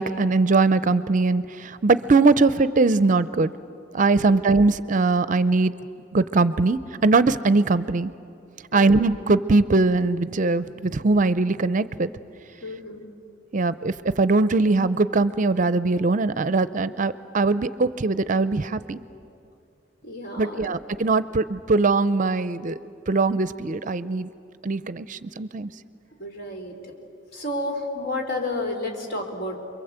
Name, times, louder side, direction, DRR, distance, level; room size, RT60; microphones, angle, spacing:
voice 1, 0.0-3.5 3.9-5.7 6.1-8.1 8.7-12.1 13.5-19.0 20.4-22.8 23.1-24.3 24.6-25.7, right 3 dB, 45° right, 15 dB, 0.6 m, -21 dB
voice 2, 8.7-9.0 12.6-13.1 20.0-20.8 26.2-26.8 27.3-29.6, left 2 dB, 55° left, 2 dB, 3.8 m, -31 dB
28.5 x 23.0 x 8.1 m, 2.5 s
head